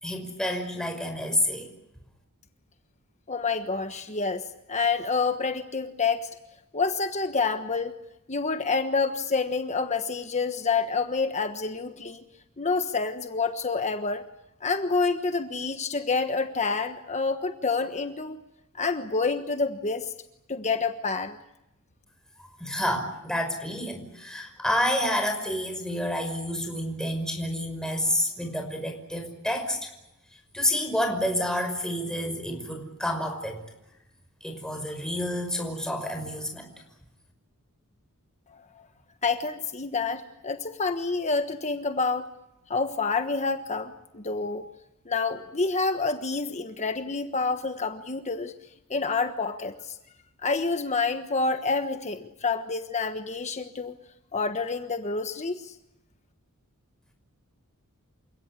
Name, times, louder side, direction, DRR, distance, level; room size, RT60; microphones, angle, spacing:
voice 1, 0.0-1.7 22.6-29.9 30.5-33.6 34.4-36.7, left 1 dB, 5° left, 3 dB, 5.6 m, -29 dB
voice 2, 3.3-6.3 6.7-7.9 8.3-12.2 12.6-14.3 14.6-18.4 18.8-20.1 20.5-21.4 39.2-42.3 42.7-44.6 45.1-48.5 48.9-49.9 50.4-53.9 54.3-55.7, left 4 dB, 30° left, 7 dB, 1.3 m, -28 dB
28.5 x 17.0 x 9.7 m, 0.88 s
head